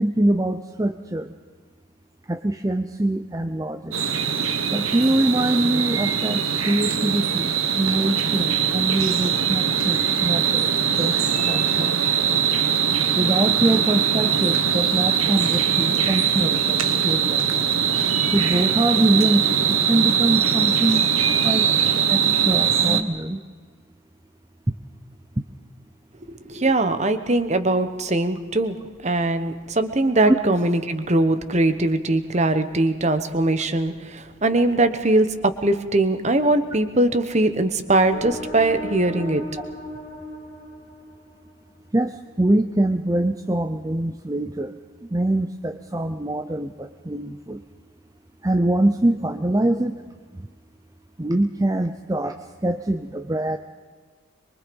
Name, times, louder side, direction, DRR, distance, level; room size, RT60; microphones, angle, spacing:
voice 1, 0.0-1.3 2.3-4.0 4.7-10.7 11.0-11.9 13.1-17.5 18.3-21.1 21.4-21.7 22.1-23.4 30.3-30.4 41.9-44.7 45.0-47.6 48.4-49.9 50.3-50.5 51.2-52.3 52.6-53.6, right 1 dB, 15° right, 7 dB, 0.6 m, -24 dB
sound 1, 3.9-23.0, right 7 dB, 90° right, 1.4 m, -21 dB
voice 2, 26.2-28.8 29.0-39.4, right 2 dB, 35° right, 10 dB, 1.2 m, -21 dB
sound 2, 38.1-41.7, left 1 dB, 25° left, 2.2 m, -36 dB
24.0 x 23.5 x 5.3 m, 1.5 s
head